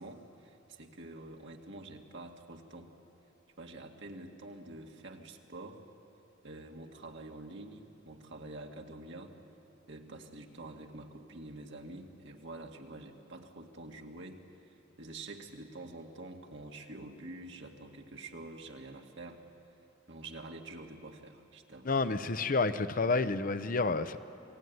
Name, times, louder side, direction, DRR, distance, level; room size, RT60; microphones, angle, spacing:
voice 1, 0.0-2.9 3.6-5.8 6.4-9.4 9.9-14.4 15.0-19.4 20.1-22.0, right 2 dB, 65° right, 2 dB, 2.1 m, -47 dB
voice 2, 21.8-24.2, left 3 dB, 45° left, 12 dB, 0.7 m, -29 dB
27.0 x 18.5 x 9.5 m, 2.8 s
head